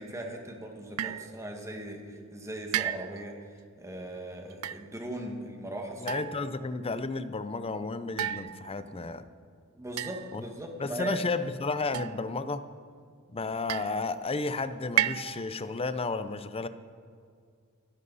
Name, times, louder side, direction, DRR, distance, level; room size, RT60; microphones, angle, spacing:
voice 1, 0.0-3.3 3.8-6.2 9.7-11.2, right 1 dB, 15° right, 2 dB, 1.8 m, -39 dB
sound 1, 1.0-1.3 2.7-3.3 4.5-4.8 6.1-6.7 8.2-9.0 10.0-10.5 11.9-12.6 13.7-14.2 15.0-15.6, right 12 dB, 75° right, 0.4 m, -33 dB
voice 2, 6.0-9.3 10.3-10.4 10.8-12.6 13.3-16.7, left 3 dB, 25° left, 12 dB, 0.6 m, -32 dB
24.5 x 11.0 x 4.1 m, 2.2 s
head